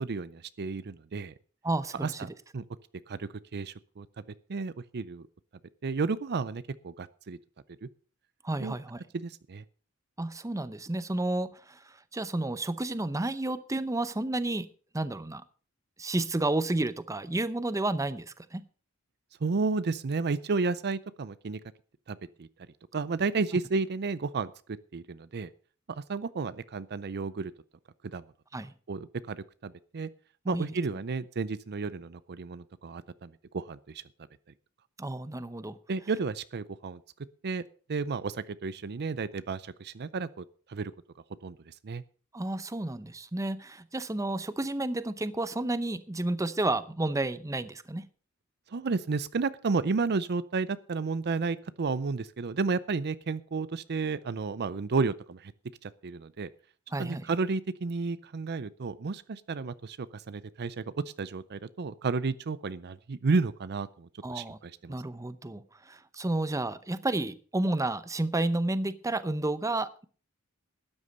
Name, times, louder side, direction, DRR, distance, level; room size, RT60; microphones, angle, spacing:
voice 1, 0.0-1.3 2.0-2.6 3.1-4.1 4.5-5.3 5.8-7.4 7.8-7.9 8.6-8.7 9.1-9.6 19.4-21.6 22.1-22.5 22.9-24.5 24.9-25.5 26.1-27.5 28.1-28.2 28.9-30.1 30.5-34.0 35.9-37.0 37.4-37.6 37.9-40.9 41.4-42.0 48.7-55.5 55.8-56.5 57.0-60.8 61.2-64.9, right 4 dB, 50° right, 0.5 m, -32 dB
voice 2, 1.6-2.2 8.4-9.0 10.2-14.7 14.9-15.4 16.0-18.6 28.5-28.7 30.4-30.7 35.0-35.8 42.3-48.1 56.9-57.3 64.2-64.6 64.9-70.0, right 2 dB, 15° right, 0.7 m, -31 dB
12.5 x 9.8 x 5.3 m
head